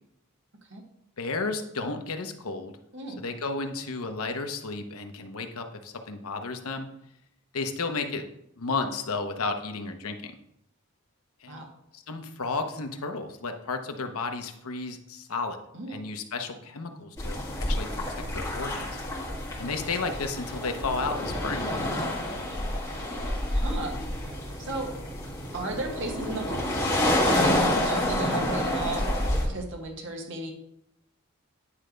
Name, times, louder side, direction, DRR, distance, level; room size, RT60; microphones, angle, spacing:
voice 1, 1.2-2.7 3.2-6.9 7.5-8.2 8.6-10.3 11.4-11.6 11.9-15.6 15.9-18.9 19.6-21.7, left 3 dB, 90° left, 6 dB, 0.8 m, -33 dB
voice 2, 2.9-3.2 11.5-11.7 15.7-16.0 23.5-24.0 24.7-24.9 25.5-29.1 29.4-30.5, right 2 dB, 55° right, 2 dB, 1.3 m, -34 dB
sound 1, 17.2-29.5, left 1 dB, 15° left, 1.6 m, -28 dB
9.9 x 3.3 x 5.1 m, 0.78 s
head